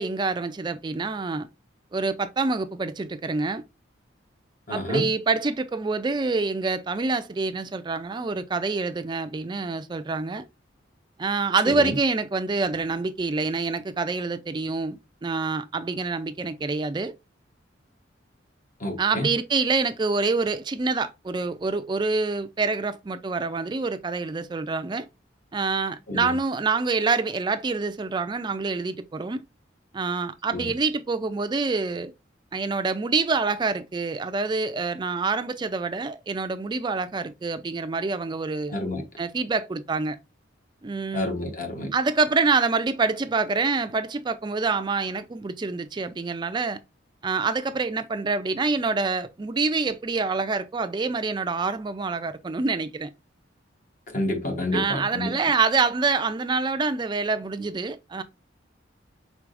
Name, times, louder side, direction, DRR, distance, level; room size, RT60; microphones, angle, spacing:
voice 1, 0.0-1.5 1.9-3.6 4.7-10.4 11.2-17.1 19.0-25.1 25.5-29.4 29.9-32.1 32.5-38.8 39.2-40.2 40.8-41.3 41.9-46.8 47.2-53.1 54.7-58.2, right 4 dB, 25° right, 0.3 m, -26 dB
voice 2, 4.7-5.0 18.8-19.3 26.1-26.3 30.5-30.7 38.7-39.0 41.1-41.9 54.1-55.3, left 1 dB, 45° left, 1.0 m, -28 dB
4.7 x 3.8 x 2.5 m
head